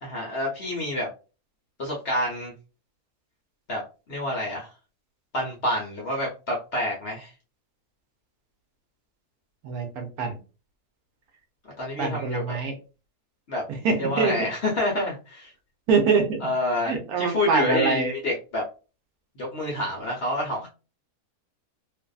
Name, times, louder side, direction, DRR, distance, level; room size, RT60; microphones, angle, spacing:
voice 1, 0.0-1.1 1.8-2.5 3.7-4.7 5.3-7.3 11.8-12.6 13.5-13.6 14.0-15.5 16.4-18.6 19.4-20.7, left 1 dB, 55° left, -3 dB, 0.7 m, -28 dB
voice 2, 9.6-10.4 12.0-12.7 13.7-14.3 15.9-16.4 16.8-18.1, right 5 dB, 75° right, 5 dB, 1.1 m, -24 dB
2.6 x 2.5 x 2.3 m, 0.33 s
omnidirectional pair, 1.7 m